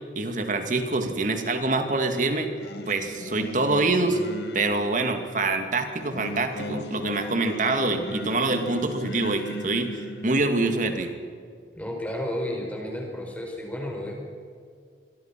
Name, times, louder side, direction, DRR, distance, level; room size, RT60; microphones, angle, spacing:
voice 1, 0.2-2.5 2.9-4.2 4.5-11.1, right 2 dB, 45° right, 6 dB, 2.4 m, -25 dB
Singing, 2.6-11.1, left 1 dB, 65° left, 1.9 m, -38 dB
voice 2, 11.7-14.1, left 1 dB, 10° left, 1 dB, 4.7 m, -32 dB
26.5 x 23.0 x 6.1 m, 2.3 s
head